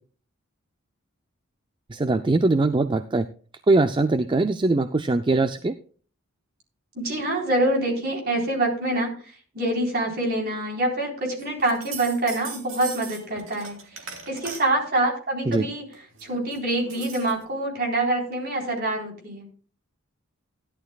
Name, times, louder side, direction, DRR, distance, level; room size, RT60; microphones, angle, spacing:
voice 1, 1.9-3.3 3.7-5.7 15.5-15.7, right 2 dB, 25° right, 10 dB, 0.4 m, -21 dB
voice 2, 6.9-15.9 16.2-19.5, right 1 dB, 45° right, 0 dB, 3.8 m, -26 dB
sound 1, 11.4-14.8 15.9-17.4, right 5 dB, 70° right, 2.6 m, -39 dB
16.0 x 11.5 x 2.3 m, 0.41 s
head